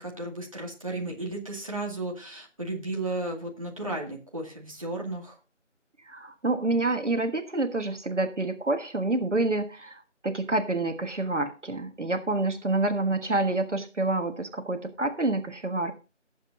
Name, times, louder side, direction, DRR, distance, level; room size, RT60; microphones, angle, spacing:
voice 1, 0.0-5.4, right 2 dB, 25° right, -2 dB, 2.2 m, -34 dB
voice 2, 6.1-15.9, right 2 dB, 70° right, 6 dB, 1.6 m, -28 dB
18.5 x 7.7 x 2.7 m, 0.32 s
figure-of-eight pair, 175°, 37 cm